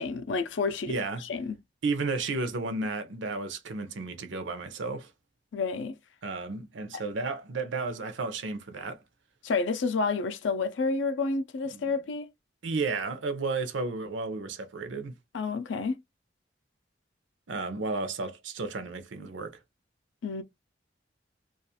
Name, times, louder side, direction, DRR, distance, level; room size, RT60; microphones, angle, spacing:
voice 1, 0.0-0.9 1.2-1.6 5.5-6.0 6.9-7.0 9.4-12.3 15.3-15.9 20.2-20.4, left 4 dB, 80° left, 0.4 m, -29 dB
voice 2, 0.9-1.2 1.8-5.1 6.2-9.0 11.7-11.9 12.6-15.1 17.5-19.6, right 3 dB, 90° right, 0.6 m, -33 dB
2.4 x 2.3 x 2.7 m
head